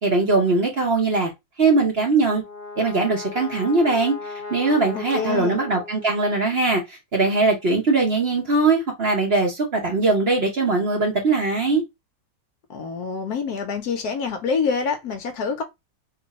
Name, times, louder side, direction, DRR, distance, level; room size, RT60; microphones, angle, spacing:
voice 1, 0.0-1.3 1.6-2.4 2.8-4.2 4.5-11.8, right 3 dB, 45° right, 0.8 m, -21 dB
Brass instrument, 2.1-6.5, left 4 dB, 40° left, 0.8 m, -37 dB
voice 2, 4.9-5.6 12.7-15.6, left 5 dB, 70° left, 1.0 m, -26 dB
3.0 x 2.6 x 4.0 m
omnidirectional pair, 2.0 m